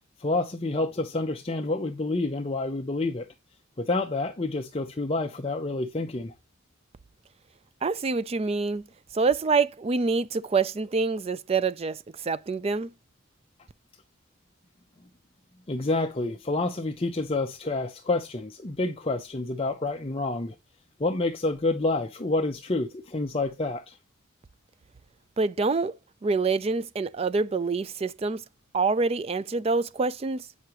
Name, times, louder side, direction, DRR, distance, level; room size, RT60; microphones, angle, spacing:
voice 1, 0.2-3.3 3.8-6.3 15.7-20.6 21.0-24.0, left 2 dB, 25° left, 0.6 m, -28 dB
voice 2, 7.8-8.8 9.1-12.9 25.4-25.9 26.2-28.4 28.7-30.5, right 4 dB, 30° right, 0.3 m, -26 dB
8.2 x 5.7 x 3.0 m
head